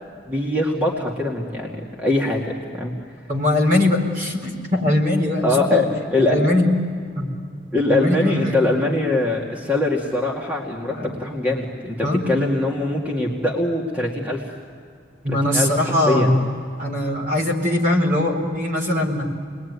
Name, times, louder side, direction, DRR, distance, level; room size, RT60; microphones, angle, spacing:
voice 1, 0.3-2.9 5.4-6.4 7.7-14.4 15.3-15.7 16.1-16.3, left 2 dB, 10° right, -2 dB, 2.3 m, -22 dB
voice 2, 3.3-5.9 6.2-6.7 7.2-7.3 7.9-8.7 11.0-11.1 12.0-12.2 15.2-16.5 16.8-19.2, left 1 dB, 45° right, 1 dB, 4.4 m, -21 dB
29.0 x 21.5 x 9.6 m, 2.4 s
head